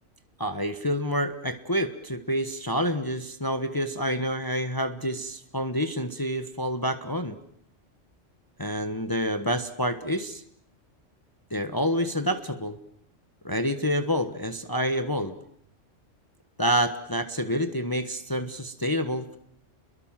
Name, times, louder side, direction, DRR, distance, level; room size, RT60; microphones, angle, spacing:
voice 1, 0.4-7.4 8.6-10.4 11.5-12.8 13.4-15.3 16.6-19.4, equal, 20° left, 9 dB, 1.3 m, -28 dB
29.5 x 22.5 x 7.5 m, 0.66 s
omnidirectional pair, 1.3 m